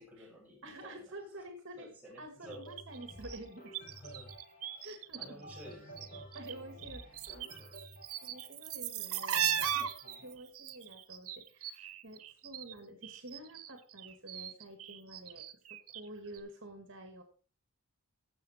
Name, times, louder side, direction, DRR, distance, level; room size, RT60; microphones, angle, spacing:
voice 1, 0.0-1.4 1.8-2.7 4.0-4.3 4.7-4.9 5.2-6.8 7.2-7.8 10.0-10.2, equal, 5° right, -4 dB, 5.7 m, -54 dB
voice 2, 0.6-1.9 2.2-3.8 4.8-5.4 6.3-7.5 8.2-9.9 10.2-15.5 15.9-17.2, right 1 dB, 60° right, 5 dB, 1.9 m, -49 dB
sound 1, 2.4-10.3, right 1 dB, 40° left, 4.7 m, -52 dB
sound 2, 2.5-5.3 5.5-6.5 6.8-12.7 13.0-16.1 16.3-16.4, right 10 dB, 75° right, 1.1 m, -38 dB
14.5 x 6.6 x 4.3 m, 0.39 s
head